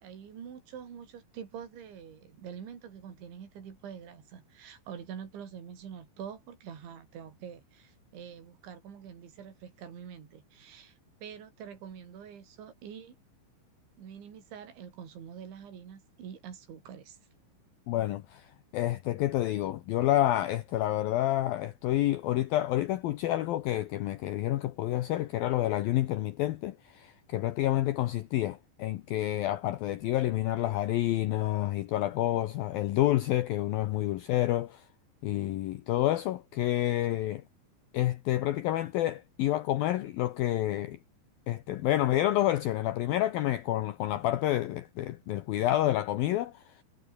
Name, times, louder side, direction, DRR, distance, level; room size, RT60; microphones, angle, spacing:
voice 1, 0.0-13.2 14.0-17.2, right 8 dB, 75° right, 6.4 m, -45 dB
voice 2, 17.9-34.8 35.2-37.4 37.9-41.0 41.5-46.7, left 14 dB, 85° left, 2.1 m, -29 dB
omnidirectional pair, 5.4 m